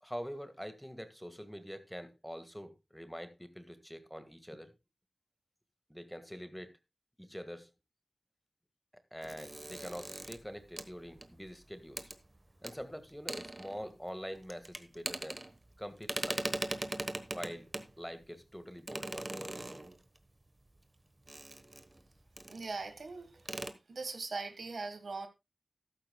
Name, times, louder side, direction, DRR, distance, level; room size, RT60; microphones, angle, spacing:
voice 1, 0.0-4.7 5.9-6.7 7.2-7.7 9.1-12.1 12.6-15.4 15.8-16.6 17.3-17.7 18.0-19.9, equal, 5° left, 1.7 m, -45 dB
sound 1, 9.2-11.5 12.0-12.2 12.6-12.7 13.1-14.1 14.4-15.8 16.0-17.9 18.9-20.2 21.3-22.0 22.4-22.7 23.0-23.1 23.4-23.7, right 1 dB, 30° right, 1.2 m, -40 dB
voice 2, 22.5-23.5 23.9-25.3, right 3 dB, 80° right, 1.5 m, -40 dB
14.0 x 12.0 x 2.3 m
wide cardioid pair, 60°, 0 cm